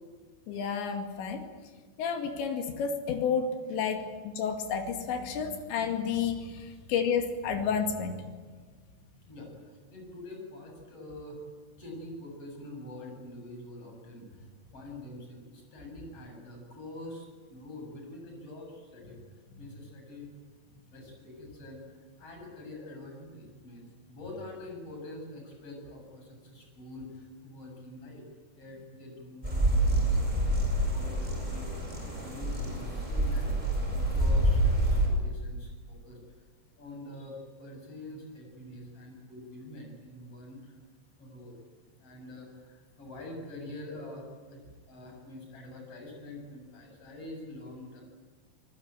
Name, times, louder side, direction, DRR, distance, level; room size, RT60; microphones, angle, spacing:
voice 1, 0.5-1.5 2.0-8.2, left 6 dB, 85° left, 5 dB, 4.5 m, -31 dB
voice 2, 9.3-11.4 11.8-14.5 14.7-19.2 19.6-20.3 20.9-28.2 28.6-30.1 30.9-31.7 32.1-36.2 36.8-40.8 41.2-41.6 42.0-44.6 44.9-48.0, left 1 dB, 30° left, 1 dB, 8.3 m, -45 dB
sound 1, 29.4-35.1, right 1 dB, 10° right, 7.1 m, -27 dB
29.0 x 20.0 x 9.1 m, 1.5 s
omnidirectional pair, 5.1 m